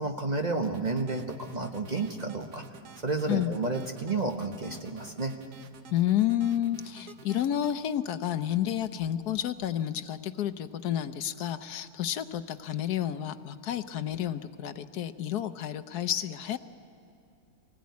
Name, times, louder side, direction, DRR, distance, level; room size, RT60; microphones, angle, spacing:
voice 1, 0.0-2.6 3.0-5.4, right 3 dB, 30° right, 3 dB, 1.0 m, -31 dB
sound 1, 0.6-7.7, right 6 dB, 70° right, 1.6 m, -51 dB
voice 2, 5.9-16.6, left 11 dB, 75° left, 11 dB, 1.2 m, -30 dB
24.0 x 16.5 x 9.5 m, 2.8 s
omnidirectional pair, 1.8 m